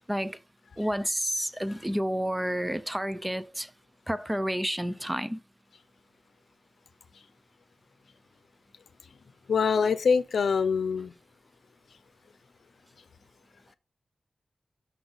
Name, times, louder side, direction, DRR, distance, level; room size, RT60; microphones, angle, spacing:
voice 1, 0.1-0.4 0.8-3.7 4.1-5.4, equal, 10° right, 0.5 m, -30 dB
voice 2, 9.5-11.1, left 5 dB, 90° left, 0.6 m, -24 dB
6.0 x 5.8 x 3.8 m
wide cardioid pair, 130°, 0 cm